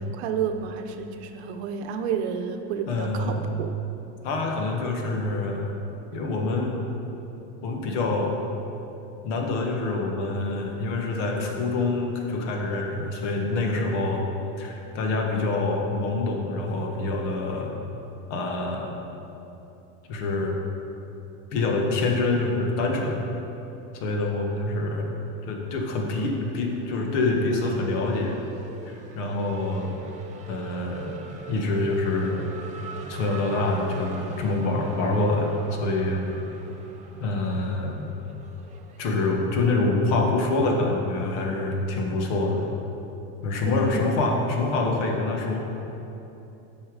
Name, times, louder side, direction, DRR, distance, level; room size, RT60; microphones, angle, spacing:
voice 1, 0.0-3.7 43.7-44.0, right 7 dB, 70° right, 6 dB, 0.8 m, -30 dB
voice 2, 2.9-3.7 4.2-5.7 6.1-6.8 7.6-8.3 9.2-14.3 14.6-17.7 18.3-19.0 20.1-20.6 21.5-23.2 23.9-25.1 25.4-28.4 28.9-29.9 30.5-31.2 31.5-32.5 33.1-36.2 37.2-38.1 39.0-42.7 43.4-45.6, left 2 dB, 75° left, 1 dB, 1.5 m, -26 dB
Race car auto racing / Accelerating revving vroom, 24.5-25.4 25.7-39.4, right 5 dB, 20° right, 0.5 m, -43 dB
8.8 x 5.7 x 4.9 m, 3.0 s
supercardioid pair, 155°, 34 cm